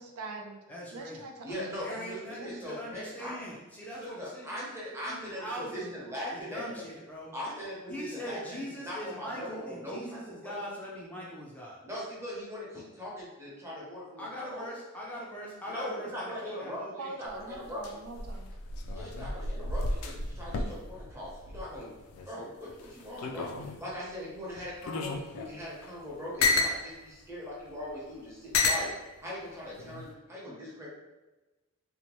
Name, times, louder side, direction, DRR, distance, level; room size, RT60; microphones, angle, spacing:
voice 1, 0.0-0.6 0.9-2.6 17.0-18.5, right 3 dB, 85° right, 2 dB, 0.4 m, -43 dB
voice 2, 0.7-1.2 1.8-5.9 6.3-7.3 7.9-11.8 14.2-17.1, equal, 5° left, -5 dB, 0.4 m, -41 dB
voice 3, 1.4-3.4 4.0-6.9 7.3-10.6 11.8-14.7 15.7-16.8 17.2-17.8 18.9-21.9 22.3-23.5 23.8-30.9, left 1 dB, 10° right, -6 dB, 0.8 m, -40 dB
sound 1, 17.3-22.3 22.7-23.9 24.6-26.8 27.7-27.8 28.5-28.9 29.8-30.1, left 3 dB, 75° left, 0.3 m, -32 dB
2.8 x 2.1 x 3.0 m, 1.1 s
head